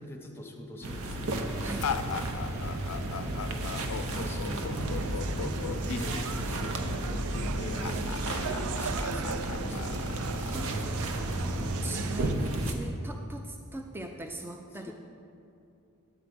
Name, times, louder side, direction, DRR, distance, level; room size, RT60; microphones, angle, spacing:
voice 1, 0.0-1.6 2.2-2.3 2.6-3.4 3.7-7.0 7.3-9.9 14.7-14.9, left 1 dB, 10° left, 3 dB, 0.8 m, -43 dB
sound 1, 0.8-12.7, right 1 dB, 70° right, 0.8 m, -33 dB
sound 2, 1.8-11.7, left 7 dB, 85° left, 0.4 m, -38 dB
sound 3, 4.7-12.3, right 6 dB, 85° right, 0.4 m, -39 dB
voice 2, 10.4-14.9, right 2 dB, 10° right, 3 dB, 0.4 m, -41 dB
10.5 x 4.7 x 7.8 m, 2.6 s
head